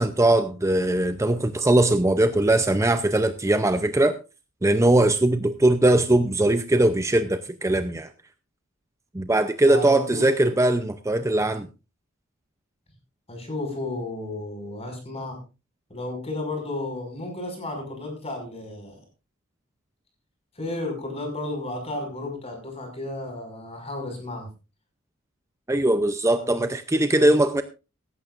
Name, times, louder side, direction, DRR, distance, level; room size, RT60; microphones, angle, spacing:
voice 1, 0.0-4.2 4.6-8.1 9.1-11.7 25.7-27.6, right 1 dB, 15° right, 0.6 m, -20 dB
voice 2, 9.7-10.6 13.3-15.4 15.9-19.0 20.5-24.5 26.4-26.5, left 2 dB, 30° left, 5.8 m, -33 dB
17.0 x 14.5 x 2.5 m
head